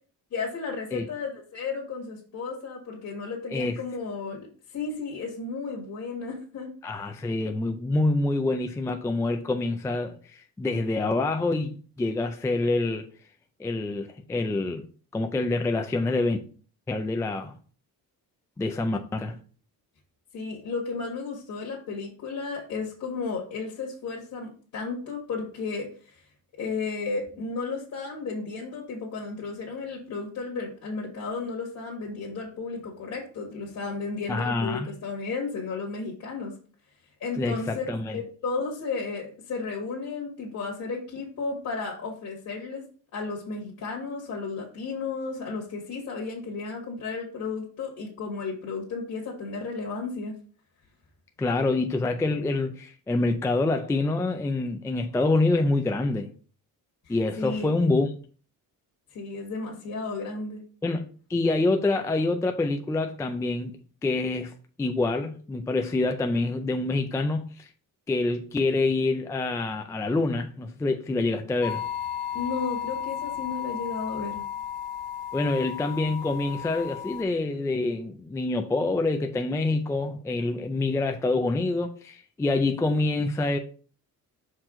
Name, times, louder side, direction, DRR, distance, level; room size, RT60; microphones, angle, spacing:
voice 1, 0.3-6.7 20.3-25.9 26.6-36.5 37.2-37.8 38.1-42.9 43.1-50.4 57.1-57.7 59.1-60.6 72.3-74.4, left 4 dB, 55° left, 1.7 m, -33 dB
voice 2, 3.5-3.8 6.8-13.1 13.6-14.8 15.1-16.4 16.9-17.6 18.6-19.4 34.3-34.9 37.4-38.2 51.4-56.3 57.1-58.1 60.8-61.0 61.3-64.5 64.8-67.7 68.1-71.9 75.3-83.6, left 2 dB, 10° left, 0.3 m, -26 dB
sound 1, 71.6-77.2, left 10 dB, 85° left, 1.3 m, -34 dB
6.0 x 4.6 x 3.7 m
cardioid pair, 155°, 36 cm